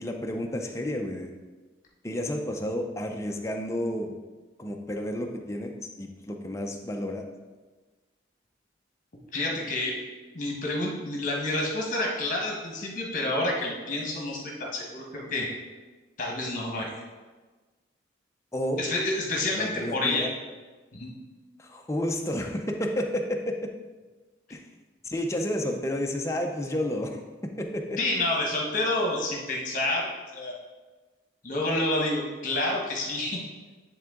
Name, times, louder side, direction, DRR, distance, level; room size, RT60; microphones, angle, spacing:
voice 1, 0.0-1.3 2.0-4.2 4.6-7.3 18.5-18.8 19.6-20.3 21.6-23.6 24.5-24.6 25.0-27.2 27.6-28.0, left 1 dB, 15° left, 2 dB, 0.5 m, -31 dB
voice 2, 9.3-9.9 10.3-15.5 16.2-16.9 18.8-20.3 20.9-21.1 28.0-30.5 31.4-33.4, left 2 dB, 40° left, -1 dB, 1.3 m, -29 dB
10.5 x 3.5 x 3.7 m, 1.3 s
head